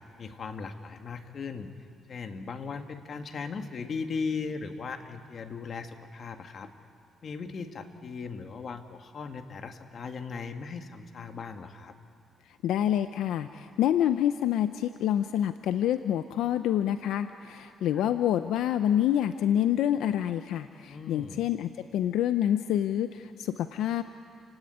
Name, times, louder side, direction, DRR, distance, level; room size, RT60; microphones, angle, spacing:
voice 1, 0.2-1.7 2.1-6.7 7.2-12.0 17.9-18.0 20.9-21.4, left 5 dB, 50° left, 6 dB, 1.9 m, -38 dB
voice 2, 12.6-24.0, left 11 dB, 85° left, 10 dB, 0.6 m, -27 dB
29.5 x 17.0 x 9.8 m, 2.5 s
cardioid pair, 90°, 0 cm